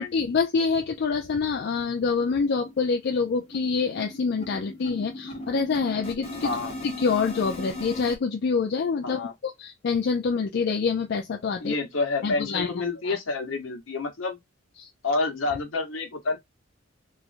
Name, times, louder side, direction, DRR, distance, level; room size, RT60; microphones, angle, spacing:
voice 1, 0.0-6.6 6.8-11.7 12.2-12.7 13.0-13.2 14.8-14.9, left 5 dB, 60° left, 0.4 m, -26 dB
sound 1, 0.9-1.0 1.3-1.4 1.8-1.9 2.2-8.2, left 1 dB, 30° left, 0.9 m, -38 dB
voice 2, 6.4-6.7 9.0-9.3 11.6-14.4 15.0-16.4, left 3 dB, 80° left, 1.0 m, -28 dB
3.0 x 2.4 x 2.5 m
head